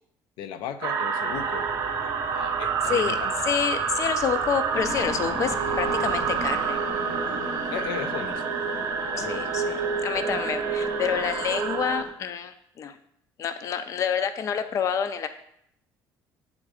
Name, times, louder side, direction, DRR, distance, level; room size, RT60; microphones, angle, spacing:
voice 1, 0.4-1.7 2.3-3.3 7.7-8.6 9.1-9.7, left 8 dB, 85° left, 9 dB, 0.5 m, -36 dB
sound 1, 0.8-12.0, right 6 dB, 50° right, 0.7 m, -28 dB
sound 2, 1.3-6.7, right 3 dB, 20° right, 0.5 m, -46 dB
voice 2, 2.9-3.2 3.4-6.8 9.2-13.0 13.4-15.3, left 7 dB, 40° left, 9 dB, 0.4 m, -28 dB
sound 3, 4.7-12.1, left 2 dB, 65° left, 1.0 m, -38 dB
7.7 x 3.7 x 4.8 m, 0.73 s
cardioid pair, 140°, 8 cm